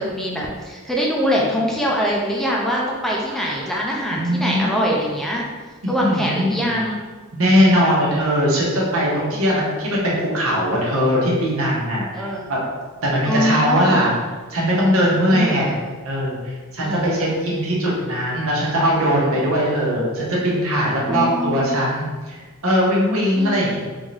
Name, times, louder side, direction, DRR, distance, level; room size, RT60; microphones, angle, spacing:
voice 1, 0.0-5.4 5.9-7.0 9.3-9.6 12.1-12.4 13.2-14.0 15.3-15.9 16.8-17.2 21.1-21.8 23.3-23.8, equal, ahead, -3 dB, 0.4 m, -23 dB
voice 2, 4.1-4.8 6.0-6.7 7.3-12.2 12.5-12.6 13.0-14.1 14.5-15.7 16.0-22.4 22.6-23.8, equal, 85° right, -5 dB, 1.0 m, -20 dB
3.5 x 2.6 x 3.3 m, 1.4 s
head